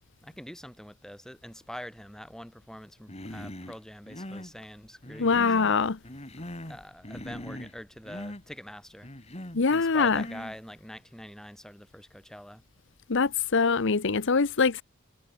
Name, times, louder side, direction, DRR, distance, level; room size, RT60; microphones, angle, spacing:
voice 1, 0.2-5.9 6.7-9.1 9.7-12.6, equal, 5° left, 5.2 m, -44 dB
Human voice, 3.1-3.8 4.1-4.5 5.0-5.8 6.0-6.8 7.0-7.8 8.1-8.4 9.0-9.6 10.1-10.6, left 1 dB, 30° left, 5.9 m, -41 dB
voice 2, 5.2-5.9 9.5-10.2 13.1-14.8, left 4 dB, 65° left, 0.9 m, -23 dB
head